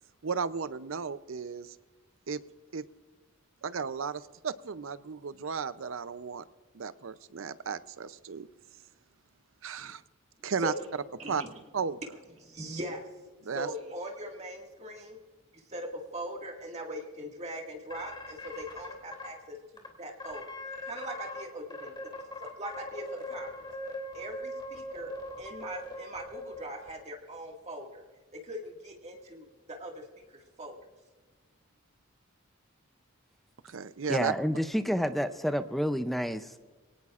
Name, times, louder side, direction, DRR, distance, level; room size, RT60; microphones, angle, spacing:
voice 1, 0.2-1.8 2.3-2.4 2.7-2.8 3.6-6.4 6.7-8.5 9.6-10.0 10.4-10.7 11.3-11.4 11.7-12.0 13.4-13.7 33.6-34.3, right 5 dB, 65° right, 14 dB, 0.6 m, -34 dB
voice 2, 10.4-10.7 11.2-11.5 12.4-13.0 13.5-15.2 15.7-20.5 20.8-21.9 22.4-23.7 24.1-25.1 25.4-28.0 28.4-30.8, equal, 30° right, 1 dB, 1.9 m, -41 dB
sound 1, 17.9-19.3 19.8-19.9 20.2-21.4 21.7-26.9, left 1 dB, 20° left, 2.8 m, -40 dB
voice 3, 34.1-36.6, equal, ahead, 9 dB, 0.5 m, -29 dB
23.5 x 18.0 x 2.5 m, 1.4 s
head